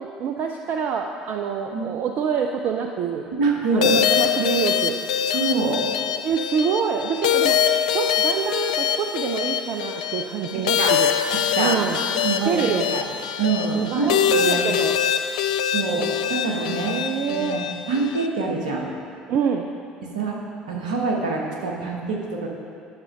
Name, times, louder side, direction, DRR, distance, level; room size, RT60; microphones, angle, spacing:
voice 1, 0.0-3.3 3.7-5.0 6.2-7.6 7.9-11.1 11.6-12.0 12.5-13.0 13.7-14.9 15.3-15.4 16.9-17.6 19.3-19.7, right 7 dB, 50° right, 3 dB, 0.5 m, -26 dB
voice 2, 3.3-4.0 5.3-5.8 10.5-11.0 11.3-11.8 12.2-12.6 12.9-13.0 13.4-14.7 15.7-17.0 17.3-18.9 20.0-20.4 20.7-22.5, right 4 dB, 70° right, -1 dB, 1.3 m, -25 dB
sound 1, 3.8-18.3, left 9 dB, 70° left, 0.3 m, -24 dB
10.5 x 6.2 x 5.1 m, 2.4 s
figure-of-eight pair, 60°, 4 cm